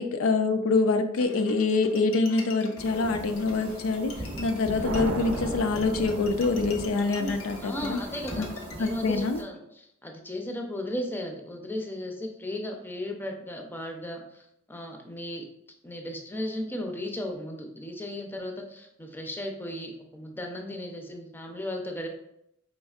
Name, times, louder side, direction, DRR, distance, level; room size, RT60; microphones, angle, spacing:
voice 1, 0.0-4.1 4.4-8.0 8.4-8.5 8.8-9.4, left 3 dB, 70° left, 7 dB, 0.4 m, -25 dB
Bowed string instrument, 1.2-8.9, left 3 dB, 90° left, 0.8 m, -45 dB
sound 1, 2.8-9.4, equal, 25° right, 0.7 m, -39 dB
sound 2, 4.8-7.1, right 2 dB, 65° right, 0.5 m, -34 dB
voice 2, 7.6-8.5 8.8-14.4 14.7-15.5 15.8-22.1, left 1 dB, 10° left, 2 dB, 0.5 m, -35 dB
5.1 x 3.5 x 2.4 m, 0.77 s
head